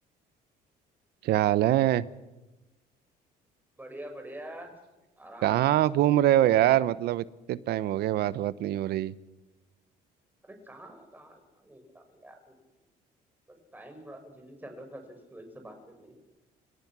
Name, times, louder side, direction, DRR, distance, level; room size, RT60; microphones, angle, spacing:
voice 1, 1.2-2.0 5.4-9.1, right 13 dB, 75° right, 18 dB, 0.9 m, -24 dB
voice 2, 3.8-4.7 5.2-5.9 10.4-12.6 13.7-16.2, right 1 dB, 10° right, 5 dB, 5.8 m, -46 dB
30.0 x 18.0 x 6.2 m, 1.1 s
cardioid pair, 110°, 17 cm